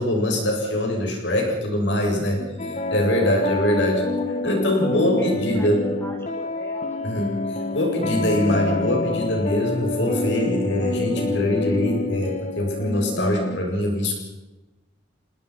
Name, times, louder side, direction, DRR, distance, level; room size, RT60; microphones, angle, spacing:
voice 1, 0.0-2.4 2.9-4.0 4.4-5.8 7.0-14.2, left 1 dB, 75° left, 1 dB, 7.6 m, -23 dB
voice 2, 2.4-2.8 3.8-4.5 5.0-5.7 6.0-7.1, equal, 15° left, 2 dB, 5.1 m, -41 dB
sound 1, 2.6-13.6, left 2 dB, 40° left, 1.8 m, -27 dB
28.5 x 19.5 x 5.9 m, 1.1 s
head